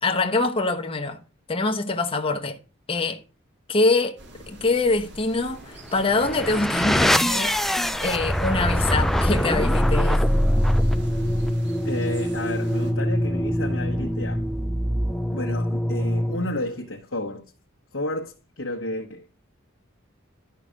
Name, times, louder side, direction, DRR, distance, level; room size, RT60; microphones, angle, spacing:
voice 1, 0.0-1.2 1.5-2.6 2.9-3.2 3.7-4.2 4.5-10.3, left 3 dB, 25° left, 1.0 m, -24 dB
sound 1, 4.2-12.9, equal, 55° right, 2.4 m, -42 dB
sound 2, 5.9-16.7, equal, ahead, 0.4 m, -23 dB
voice 2, 11.8-14.4 15.3-17.4 17.9-19.3, left 1 dB, 65° left, 1.3 m, -31 dB
11.5 x 5.8 x 5.1 m
head